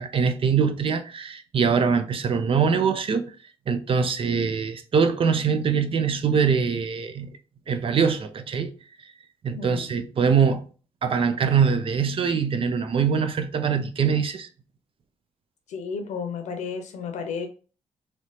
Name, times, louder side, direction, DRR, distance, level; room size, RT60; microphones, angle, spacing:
voice 1, 0.0-3.3 3.7-7.3 7.7-8.7 9.4-10.7 11.0-14.5, right 6 dB, 45° right, 0.5 m, -23 dB
voice 2, 9.6-9.9 15.7-17.5, left 5 dB, 75° left, 0.7 m, -32 dB
3.2 x 3.0 x 2.7 m
supercardioid pair, 60°, 13 cm